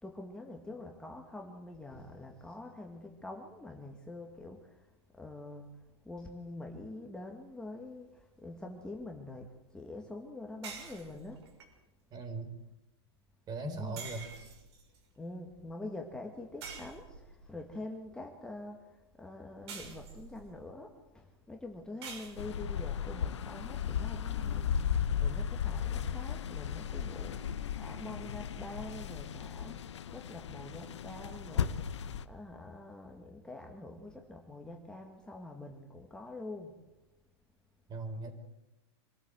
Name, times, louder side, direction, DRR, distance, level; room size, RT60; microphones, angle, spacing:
voice 1, 0.0-4.8 5.1-5.7 6.1-11.4 13.6-14.0 15.2-31.8 32.3-36.7, left 2 dB, 5° left, 1 dB, 2.0 m, -45 dB
sound 1, 10.6-11.7 14.0-15.0 16.6-17.5 19.7-20.5 22.0-22.7, right 5 dB, 70° right, 6.0 m, -47 dB
voice 2, 12.1-12.6 13.5-14.3 37.9-38.3, right 2 dB, 25° right, 8 dB, 4.0 m, -39 dB
sound 2, 22.4-32.2, left 8 dB, 90° left, 1.1 m, -35 dB
25.5 x 13.5 x 7.9 m, 1.0 s
hypercardioid pair, 130°, 14 cm